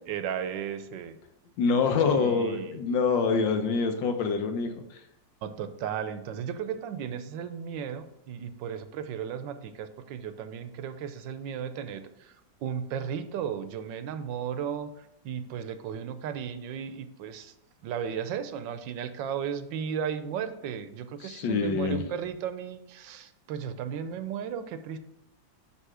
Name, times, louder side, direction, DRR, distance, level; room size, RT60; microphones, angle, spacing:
voice 1, 0.1-1.2 2.0-2.8 5.4-12.3 12.6-14.9 15.2-17.5 17.8-25.0, right 8 dB, 85° right, 10 dB, 1.4 m, -35 dB
voice 2, 1.6-5.0 21.2-22.1, left 5 dB, 80° left, 6 dB, 1.6 m, -26 dB
5.9 x 5.5 x 4.9 m, 0.80 s
omnidirectional pair, 2.0 m